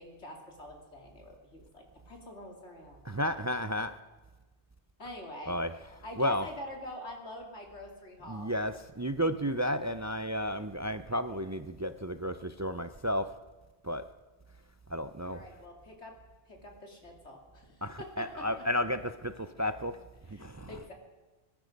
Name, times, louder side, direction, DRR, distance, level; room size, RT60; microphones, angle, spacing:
voice 1, 0.0-3.4 5.0-5.5 6.0-8.5 15.3-16.1 16.5-18.4 20.2-20.9, left 1 dB, 90° left, 1 dB, 3.1 m, -46 dB
voice 2, 3.0-3.9 5.5-5.7 6.2-6.5 8.3-13.3 13.8-14.0 14.9-15.4 17.8-20.0 20.3-20.8, equal, 30° right, 10 dB, 0.3 m, -32 dB
21.5 x 12.0 x 5.2 m, 1.2 s
omnidirectional pair, 1.1 m